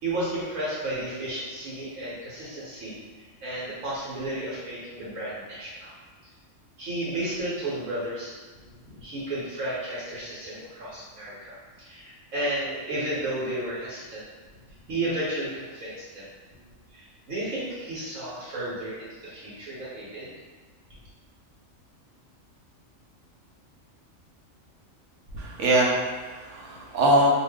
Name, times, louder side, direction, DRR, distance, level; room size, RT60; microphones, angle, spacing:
voice 1, 0.0-5.9 6.8-8.4 8.8-14.3 14.9-16.3 16.9-20.3, right 1 dB, 80° right, -9 dB, 1.3 m, -33 dB
voice 2, 25.3-27.3, right 1 dB, 65° right, -3 dB, 0.9 m, -23 dB
2.5 x 2.5 x 3.4 m, 1.3 s
omnidirectional pair, 1.4 m